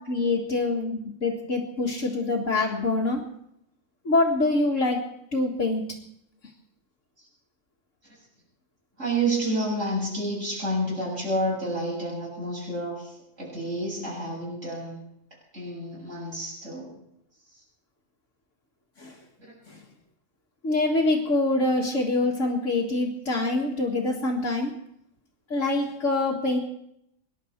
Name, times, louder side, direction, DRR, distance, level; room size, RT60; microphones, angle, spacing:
voice 1, 0.0-3.2 4.0-6.0 19.0-19.2 19.7-19.8 20.6-24.7 25.5-26.6, left 2 dB, 80° left, -3 dB, 2.3 m, -25 dB
voice 2, 9.0-15.0 15.5-17.0 17.5-17.6 19.4-19.5, right 1 dB, 85° right, -6 dB, 7.9 m, -30 dB
25.5 x 11.0 x 4.5 m, 0.77 s
omnidirectional pair, 1.3 m